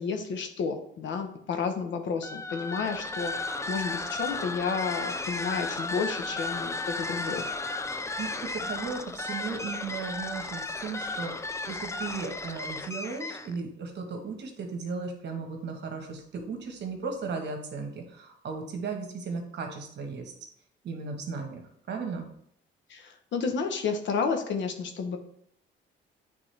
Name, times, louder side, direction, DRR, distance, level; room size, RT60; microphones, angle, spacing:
voice 1, 0.0-7.5 22.9-25.2, left 5 dB, 70° left, 6 dB, 1.0 m, -31 dB
sound 1, 2.2-13.6, left 3 dB, 15° left, 0.4 m, -34 dB
voice 2, 8.2-11.3 11.7-20.3 20.8-21.6 21.9-22.3, right 4 dB, 60° right, 3 dB, 1.4 m, -36 dB
8.6 x 3.6 x 3.3 m, 0.68 s
cardioid pair, 90°, 20 cm